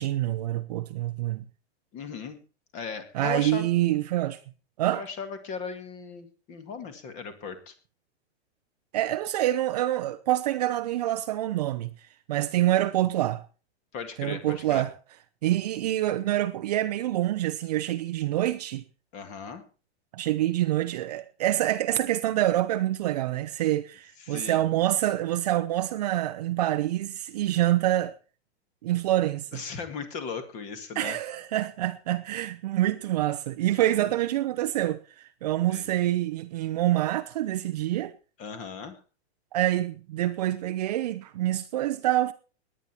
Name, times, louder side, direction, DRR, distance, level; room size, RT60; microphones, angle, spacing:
voice 1, 0.0-1.4 3.1-4.4 4.8-5.0 8.9-11.9 12.3-13.4 14.2-14.9 15.4-18.8 20.1-28.1 28.8-29.6 31.0-35.0 35.4-38.1 39.5-42.3, right 14 dB, 35° right, 0.7 m, -26 dB
voice 2, 1.9-2.4 2.7-3.7 4.9-7.7 13.9-14.8 19.1-19.6 24.2-24.6 29.5-31.2 33.8-34.1 35.7-35.9 38.4-39.0, left 5 dB, 20° left, 1.9 m, -37 dB
19.0 x 10.0 x 4.4 m
supercardioid pair, 175°, 33 cm